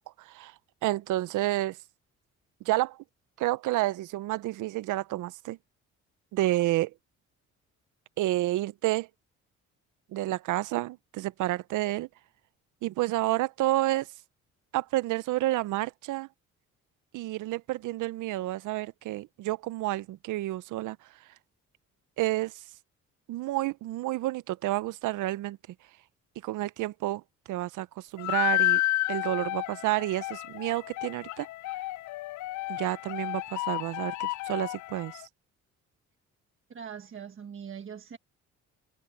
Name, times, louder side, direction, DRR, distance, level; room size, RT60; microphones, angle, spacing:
voice 1, 0.2-0.5 0.8-1.8 2.6-3.0 3.4-5.6 6.3-6.9 8.2-9.1 10.1-12.1 12.8-14.1 14.7-16.3 17.1-21.0 22.2-22.6 23.3-25.6 26.4-27.2 27.5-28.8 29.1-31.5 32.7-35.2, right 16 dB, 80° right, 0.6 m, -30 dB
sound 1, 28.2-35.2, left 16 dB, 70° left, 0.5 m, -31 dB
voice 2, 36.7-38.2, right 7 dB, 40° right, 1.4 m, -42 dB
cardioid pair, 90°, 30 cm